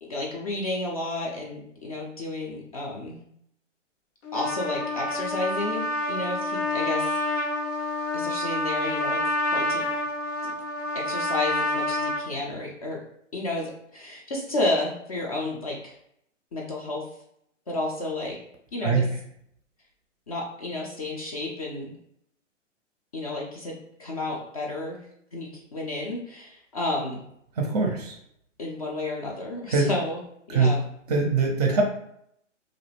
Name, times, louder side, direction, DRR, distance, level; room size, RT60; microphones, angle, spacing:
voice 1, 0.0-3.2 4.3-7.5 8.1-9.2 9.5-9.8 10.9-13.0 13.3-16.0 16.5-17.0 17.7-18.4 18.7-19.1 20.3-21.9 23.1-25.1 25.3-27.2 28.6-30.2 30.5-30.8, left 2 dB, 30° left, -2 dB, 0.4 m, -31 dB
Trumpet, 4.2-12.2, left 1 dB, 80° left, 0.7 m, -28 dB
voice 2, 27.6-28.2 29.7-29.9 30.5-30.7 31.1-31.8, right 4 dB, 35° right, 2 dB, 0.5 m, -22 dB
2.4 x 2.0 x 3.1 m, 0.72 s
hypercardioid pair, 130°, 37 cm